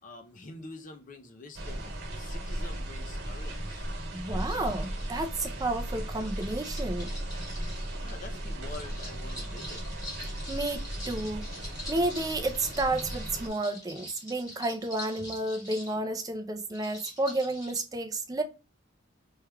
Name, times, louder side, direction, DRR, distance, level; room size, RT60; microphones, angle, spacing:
voice 1, 0.0-3.9 8.0-9.9, left 2 dB, 40° left, 0.6 m, -46 dB
sound 1, 1.5-13.5, right 1 dB, 50° right, 1.4 m, -36 dB
voice 2, 4.1-7.1 10.5-11.5 11.9-18.4, right 2 dB, 15° right, 0.5 m, -31 dB
sound 2, 4.4-5.3 6.2-7.9 8.6-16.0 16.7-17.8, left 1 dB, 15° left, 1.6 m, -44 dB
4.5 x 3.3 x 2.3 m
head